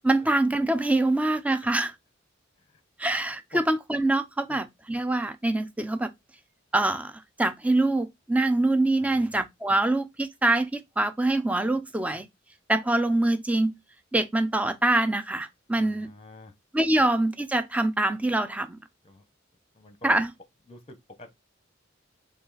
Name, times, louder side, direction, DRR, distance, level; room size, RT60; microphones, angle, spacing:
voice 1, 0.0-1.9 3.0-6.1 6.7-12.3 12.7-13.7 14.1-16.1 16.7-18.8 20.0-20.3, right 2 dB, 5° right, 0.4 m, -24 dB
voice 2, 9.0-9.4 15.7-16.5 19.0-19.2 19.7-20.1 20.7-21.3, left 1 dB, 30° left, 0.9 m, -47 dB
5.4 x 2.4 x 3.9 m
head